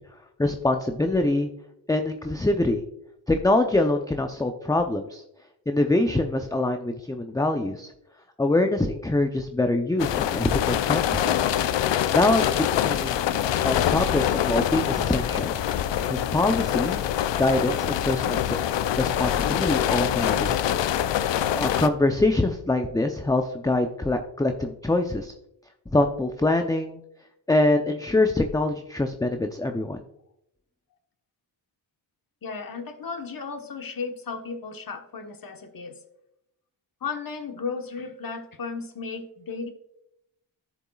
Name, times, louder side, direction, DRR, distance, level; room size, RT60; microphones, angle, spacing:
voice 1, 0.4-1.5 1.9-2.8 3.3-5.2 5.7-7.9 8.4-11.5 12.1-13.3 13.6-15.6 16.1-17.0 17.4-18.4 19.0-20.6 21.5-25.3 25.9-27.0 27.5-30.0, left 2 dB, 10° left, 5 dB, 0.6 m, -24 dB
sound 1, 10.0-21.9, left 10 dB, 70° left, 0.6 m, -25 dB
voice 2, 32.4-35.9 37.0-39.7, left 5 dB, 45° left, 6 dB, 1.3 m, -34 dB
11.0 x 7.1 x 2.4 m, 0.80 s
cardioid pair, 60°, 46 cm